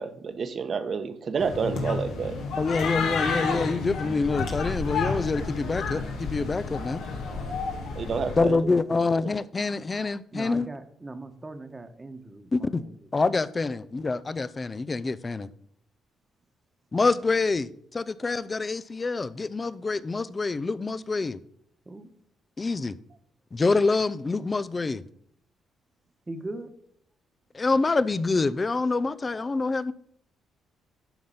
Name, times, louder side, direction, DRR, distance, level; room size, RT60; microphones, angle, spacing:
voice 1, 0.0-2.4 7.9-8.6, right 5 dB, 50° right, 1.1 m, -29 dB
sound 1, 1.4-8.4, left 4 dB, 80° left, 1.9 m, -30 dB
voice 2, 2.6-7.0 8.4-10.7 12.5-12.8 13.1-15.5 16.9-21.4 22.6-23.0 23.5-25.0 27.5-29.9, left 3 dB, 30° left, 0.5 m, -26 dB
voice 3, 7.2-7.6 10.3-12.9 21.8-22.1 26.3-26.7, right 2 dB, 20° right, 1.2 m, -40 dB
11.5 x 3.9 x 5.6 m
cardioid pair, 90°, 0 cm